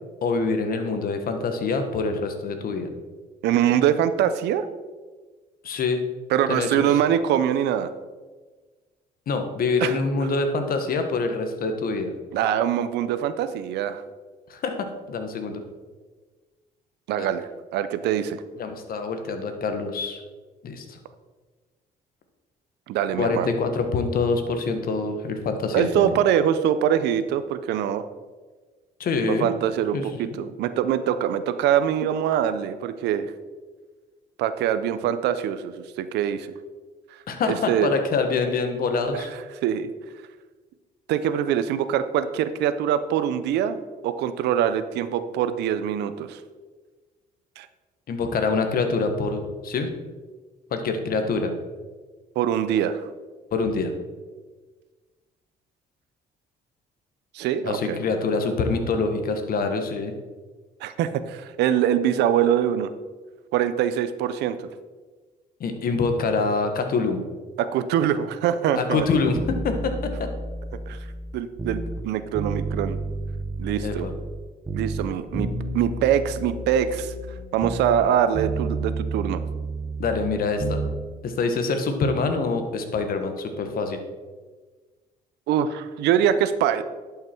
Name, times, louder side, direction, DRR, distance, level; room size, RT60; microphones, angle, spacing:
voice 1, 0.2-2.9 5.6-6.0 6.5-7.0 9.3-12.1 14.5-15.6 17.2-17.3 18.6-20.2 20.6-21.0 23.2-26.1 29.0-29.5 29.9-30.4 37.3-39.3 48.1-49.9 50.7-51.5 53.5-53.9 57.6-60.1 65.6-67.2 68.7-70.3 73.8-74.1 80.0-80.8 81.2-84.0, left 4 dB, 60° left, 6 dB, 1.5 m, -25 dB
voice 2, 3.4-4.6 6.3-7.9 9.8-10.0 12.3-14.0 17.1-18.4 22.9-23.5 25.7-28.0 29.3-33.3 34.4-36.5 37.4-37.9 39.1-39.3 39.6-39.9 41.1-43.8 44.0-46.4 47.6-47.7 52.4-53.0 57.3-58.0 60.8-62.9 63.5-64.7 67.6-69.1 70.9-71.0 71.3-73.0 73.6-74.1 74.7-77.1 77.5-79.4 85.5-86.8, right 9 dB, 85° right, 12 dB, 0.6 m, -23 dB
sound 1, 69.4-72.0 72.3-74.4 74.7-78.1 78.3-81.0 81.3-81.4, right 2 dB, 20° right, 0.9 m, -31 dB
11.0 x 5.8 x 4.5 m, 1.3 s
cardioid pair, 85°, 17 cm